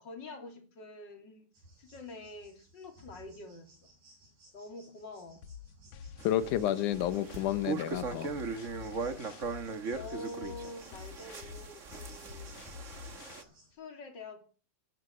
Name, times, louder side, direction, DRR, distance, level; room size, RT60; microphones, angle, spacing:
voice 1, 0.0-1.5 1.8-3.9 4.5-5.5 9.9-12.6 13.7-14.4, left 2 dB, 35° left, 3.4 m, -46 dB
sound 1, 1.5-13.7, right 1 dB, 70° right, 7.7 m, -60 dB
sound 2, 5.4-13.4, left 8 dB, 65° left, 2.2 m, -48 dB
voice 2, 6.2-8.3, left 12 dB, 90° left, 2.5 m, -30 dB
sound 3, 6.2-13.4, right 4 dB, 45° right, 1.0 m, -39 dB
18.5 x 11.0 x 6.1 m
omnidirectional pair, 3.4 m